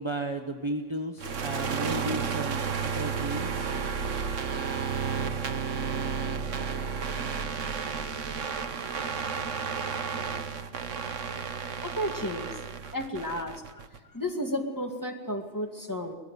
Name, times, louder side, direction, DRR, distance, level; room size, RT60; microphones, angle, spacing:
voice 1, 0.0-3.7, right 1 dB, 25° right, 4 dB, 1.2 m, -34 dB
sound 1, 1.2-14.0, right 6 dB, 75° right, 1.5 m, -32 dB
voice 2, 11.8-12.5 12.9-13.5 14.1-16.2, equal, 15° left, 3 dB, 2.1 m, -32 dB
21.0 x 14.5 x 9.4 m, 1.3 s
omnidirectional pair, 1.3 m